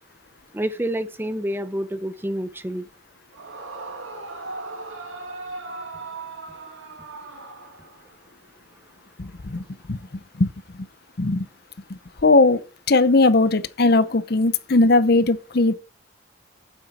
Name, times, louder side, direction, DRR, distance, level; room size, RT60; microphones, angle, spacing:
voice 1, 0.5-2.9, right 1 dB, 10° right, 0.6 m, -28 dB
Yell / Screaming, 3.3-8.2, right 3 dB, 80° right, 2.1 m, -37 dB
voice 2, 9.2-10.9 11.2-11.5 11.9-12.6 12.9-15.8, left 2 dB, 50° left, 0.7 m, -19 dB
9.1 x 8.1 x 4.2 m
head